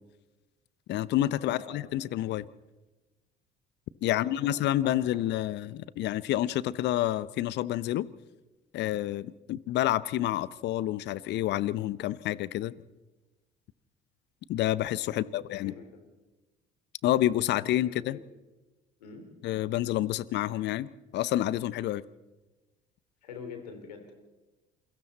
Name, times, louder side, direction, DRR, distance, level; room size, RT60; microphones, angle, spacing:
voice 1, 0.9-2.4 4.0-8.1 8.7-12.7 14.5-15.8 17.0-18.2 19.4-22.0, left 13 dB, 60° left, 19 dB, 0.8 m, -29 dB
voice 2, 1.4-1.7 4.1-4.9 15.1-15.9 17.6-18.2 19.0-19.2 23.2-24.2, left 5 dB, 85° left, 5 dB, 3.1 m, -45 dB
28.5 x 22.5 x 4.2 m, 1.1 s
hypercardioid pair, 60°, 21 cm